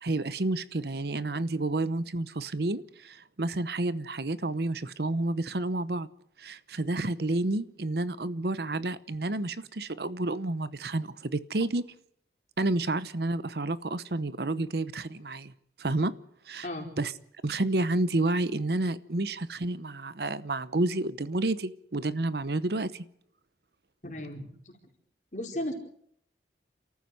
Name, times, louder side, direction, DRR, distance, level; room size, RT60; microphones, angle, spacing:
voice 1, 0.0-6.1 6.4-11.8 12.6-15.5 15.8-16.1 16.5-16.7 17.0-17.1 17.4-23.0, right 2 dB, 60° right, 16 dB, 0.9 m, -30 dB
voice 2, 24.0-24.8 25.3-25.7, left 1 dB, 40° left, 2 dB, 4.6 m, -35 dB
29.0 x 14.0 x 7.8 m, 0.68 s
head